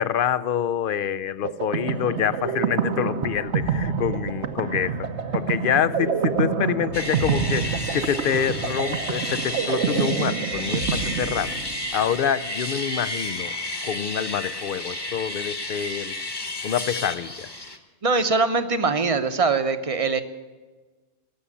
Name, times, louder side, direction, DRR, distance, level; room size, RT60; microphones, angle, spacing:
voice 1, 0.0-5.1 5.3-11.6 11.9-13.5 13.8-16.1 16.6-17.5, left 8 dB, 55° left, 15 dB, 0.7 m, -26 dB
sound 1, 1.4-12.0, right 6 dB, 75° right, 1.3 m, -27 dB
sound 2, 6.9-17.8, left 1 dB, 20° left, 1.2 m, -32 dB
voice 2, 18.0-20.2, right 4 dB, 35° right, 9 dB, 0.9 m, -22 dB
18.0 x 7.1 x 9.7 m, 1.3 s
omnidirectional pair, 1.2 m